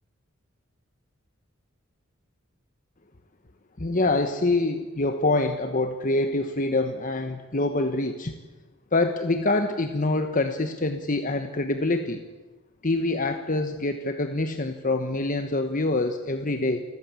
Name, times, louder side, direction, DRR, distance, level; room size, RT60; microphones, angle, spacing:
voice 1, 3.8-8.3 8.9-12.2 12.8-16.8, left 2 dB, 40° left, 7 dB, 1.2 m, -25 dB
29.0 x 14.0 x 8.5 m, 1.2 s
head